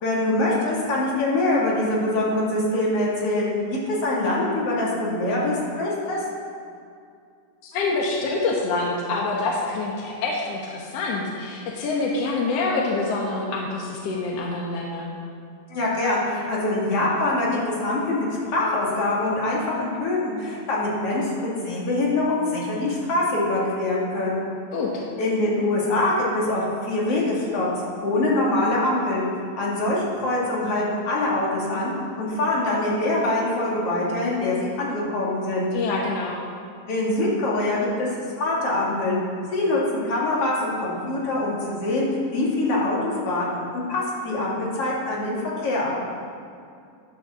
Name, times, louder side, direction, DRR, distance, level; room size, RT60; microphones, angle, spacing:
voice 1, 0.0-3.5 3.9-6.2 15.7-24.4 25.2-27.7 28.0-29.2 29.6-31.9 32.2-35.7 36.9-38.1 38.4-39.2 39.5-42.1 42.3-43.0 43.2-45.9, left 2 dB, 45° left, -5 dB, 2.8 m, -24 dB
voice 2, 7.6-15.1 24.7-25.0 35.7-36.4, left 3 dB, 70° left, -1 dB, 1.5 m, -26 dB
10.0 x 8.0 x 6.9 m, 2.4 s
omnidirectional pair, 4.3 m